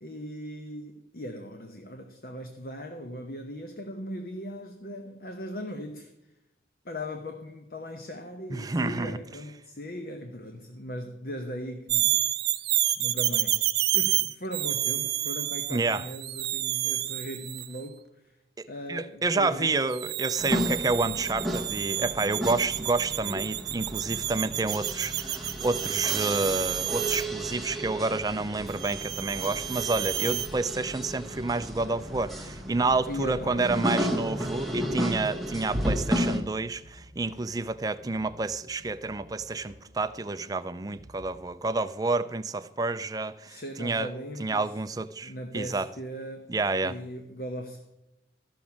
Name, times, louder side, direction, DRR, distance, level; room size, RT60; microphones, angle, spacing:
voice 1, 0.0-6.1 6.8-12.2 13.0-18.4 18.7-19.8 33.1-34.3 43.5-44.8 45.2-46.5 46.8-48.0, equal, 55° left, 1.0 m, -39 dB
voice 2, 8.5-9.2 15.7-16.1 18.6-44.1 44.4-45.9 46.5-47.0, right 3 dB, 20° right, 0.4 m, -29 dB
sound 1, 11.9-17.8 19.9-27.2 28.7-30.5, right 14 dB, 65° right, 0.6 m, -30 dB
sound 2, 20.4-36.4, equal, ahead, 1.1 m, -33 dB
sound 3, 31.3-41.4, equal, 85° left, 3.4 m, -54 dB
13.5 x 6.2 x 7.1 m
head